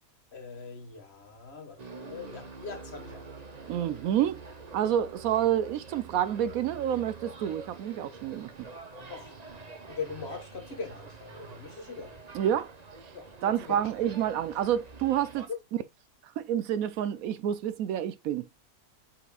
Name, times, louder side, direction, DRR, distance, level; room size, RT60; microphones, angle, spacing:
voice 1, 0.3-3.4 9.1-9.5 9.9-12.2 13.1-13.9 15.5-15.6, left 5 dB, 45° left, 1.8 m, -41 dB
sound 1, 1.8-15.5, right 4 dB, 30° right, 1.0 m, -46 dB
voice 2, 3.7-4.4 4.7-8.5 12.3-12.7 13.4-15.5 16.4-18.5, right 10 dB, 75° right, 1.0 m, -28 dB
8.8 x 4.9 x 2.3 m
omnidirectional pair, 1.5 m